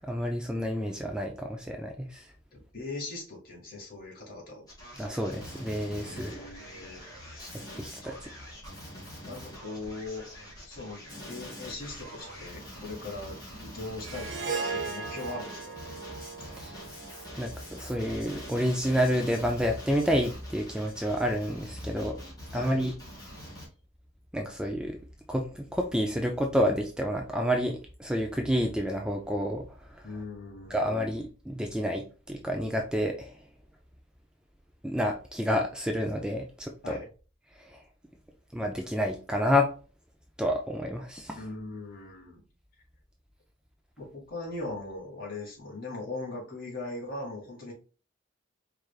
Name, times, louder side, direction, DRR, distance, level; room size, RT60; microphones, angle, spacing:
voice 1, 0.0-2.3 5.0-6.4 7.5-8.1 16.4-16.8 17.4-22.2 22.5-22.9 24.3-25.0 25.3-29.7 29.9-30.1 30.7-33.3 34.8-37.0 37.6-37.8 38.5-39.7 40.4-41.4, equal, 5° right, 2 dB, 0.4 m, -29 dB
voice 2, 2.5-4.7 6.0-7.6 9.2-10.3 10.7-15.7 22.5-22.7 30.0-31.0 36.8-37.1 41.4-42.4 44.0-47.7, left 2 dB, 45° left, -3 dB, 2.0 m, -40 dB
Male speech man speaking, 4.7-23.7, equal, 20° left, 1.8 m, -45 dB
Harp, 14.0-18.5, right 4 dB, 65° right, 1.0 m, -37 dB
4.7 x 3.3 x 2.4 m, 0.35 s
head